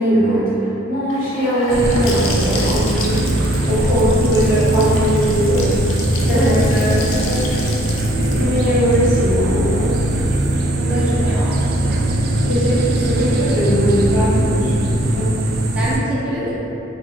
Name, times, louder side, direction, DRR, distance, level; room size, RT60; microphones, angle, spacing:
voice 1, 0.0-5.8 6.2-6.5 6.8-7.5 8.2-10.0 12.4-15.3, right 1 dB, 30° left, -16 dB, 1.1 m, -20 dB
Gurgling / Sink (filling or washing) / Bathtub (filling or washing), 1.1-10.9, left 3 dB, 65° left, 0.4 m, -32 dB
sound 1, 1.7-16.0, right 1 dB, 45° right, 0.3 m, -19 dB
voice 2, 6.3-7.3 10.8-11.7 12.9-13.1 15.8-16.6, equal, 5° right, -9 dB, 0.7 m, -24 dB
2.9 x 2.1 x 3.8 m, 2.9 s
head